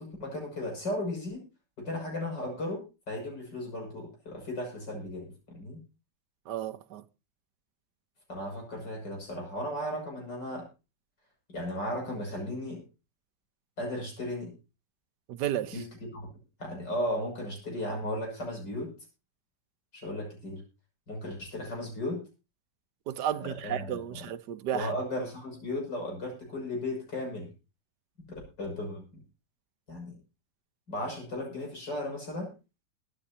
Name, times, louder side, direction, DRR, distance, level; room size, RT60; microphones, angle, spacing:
voice 1, 0.0-1.4 1.8-5.8 8.3-10.7 11.5-12.8 13.8-14.5 15.7-15.9 16.1-16.3 16.6-18.9 19.9-20.6 21.1-22.2 23.4-24.3 24.7-27.5 28.6-29.0 29.9-30.2 30.9-32.5, left 1 dB, 85° left, 7.2 m, -35 dB
voice 2, 6.5-7.0 15.3-15.7 23.1-24.9, right 10 dB, 75° right, 1.4 m, -33 dB
23.0 x 9.8 x 2.8 m
omnidirectional pair, 1.8 m